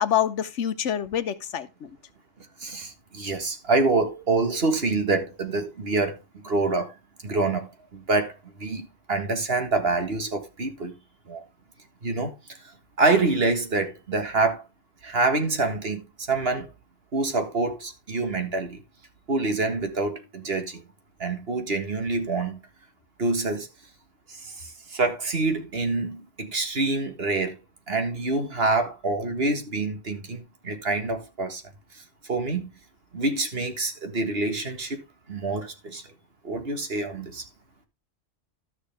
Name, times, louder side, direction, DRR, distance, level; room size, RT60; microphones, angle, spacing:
voice 1, 0.0-1.9, left 10 dB, 70° left, 1.1 m, -26 dB
voice 2, 2.6-6.9 7.2-10.9 11.3-11.4 12.0-12.3 13.0-14.6 15.0-16.7 17.1-18.8 19.3-20.8 21.2-22.6 23.2-23.7 24.3-27.6 27.9-31.6 32.3-32.7 33.1-35.0 35.3-36.0 36.4-37.4, right 3 dB, 50° right, 1.9 m, -26 dB
13.0 x 6.4 x 3.4 m
omnidirectional pair, 1.3 m